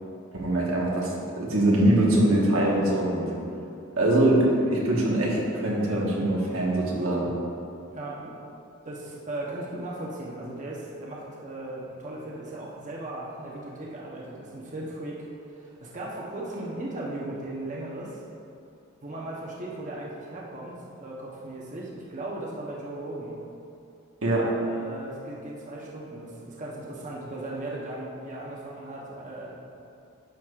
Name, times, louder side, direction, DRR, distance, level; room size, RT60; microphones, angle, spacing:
voice 1, 0.3-3.3 4.0-7.3 24.2-24.6, right 1 dB, 90° right, -4 dB, 1.4 m, -23 dB
voice 2, 7.9-8.3 8.8-18.2 19.0-23.4 24.6-29.6, right 1 dB, 35° right, -4 dB, 0.9 m, -37 dB
10.0 x 6.2 x 2.4 m, 2.7 s
head